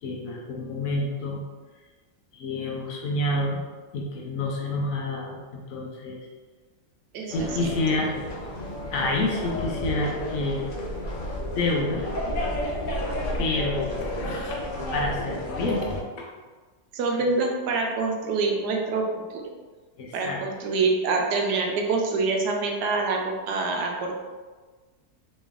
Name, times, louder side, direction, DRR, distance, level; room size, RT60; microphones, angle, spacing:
voice 1, 0.0-1.4 2.3-3.6 3.9-6.2 7.3-8.1 8.9-10.7 11.6-12.1 13.3-14.6 14.9-15.8 16.2-16.3 20.0-20.4, left 2 dB, 65° left, -2 dB, 0.9 m, -28 dB
voice 2, 7.1-7.7 16.9-19.4 20.1-24.2, right 3 dB, 85° right, 1 dB, 1.2 m, -26 dB
sound 1, 7.3-16.0, left 1 dB, 85° left, 0.4 m, -31 dB
3.1 x 3.1 x 3.5 m, 1.4 s
omnidirectional pair, 1.7 m